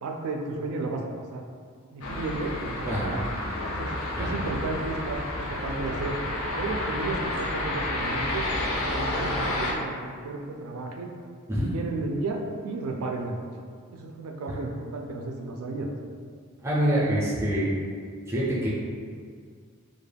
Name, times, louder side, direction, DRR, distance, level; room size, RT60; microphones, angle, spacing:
voice 1, 0.0-1.5 1.9-3.3 3.7-3.9 4.2-6.2 6.5-8.5 8.8-11.1 11.7-13.5 13.9-15.9, right 3 dB, 80° right, 2 dB, 0.3 m, -33 dB
sound 1, 2.0-9.7, left 1 dB, 70° left, 0.4 m, -30 dB
voice 2, 16.6-17.7 18.3-18.7, right 1 dB, 10° right, -8 dB, 0.4 m, -25 dB
2.3 x 2.1 x 3.3 m, 2.1 s
head